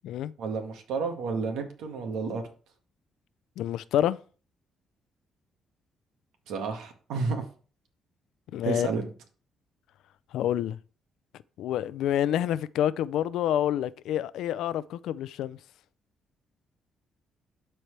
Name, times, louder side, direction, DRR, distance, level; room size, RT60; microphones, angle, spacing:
voice 1, 0.4-2.4 6.5-7.4 8.6-9.1, right 4 dB, 85° right, 1.8 m, -31 dB
voice 2, 3.6-4.2 8.5-8.9 10.3-10.8 11.6-15.6, left 11 dB, 85° left, 0.4 m, -28 dB
12.5 x 4.5 x 3.3 m
cardioid pair, 90°, 0 cm